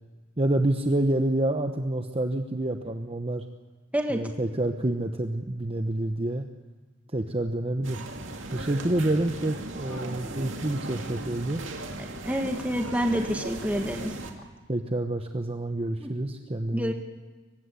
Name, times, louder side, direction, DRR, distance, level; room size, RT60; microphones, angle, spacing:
voice 1, 0.4-3.5 4.1-6.5 7.1-8.0 8.5-11.6 12.4-12.5 14.7-16.9, right 1 dB, 25° right, 6 dB, 0.9 m, -28 dB
sound 1, 7.8-14.3, right 2 dB, 60° right, 2.5 m, -37 dB
voice 2, 12.2-14.1 16.0-16.3 16.7-16.9, equal, 5° right, 3 dB, 2.0 m, -28 dB
23.5 x 19.5 x 8.4 m, 1.3 s
head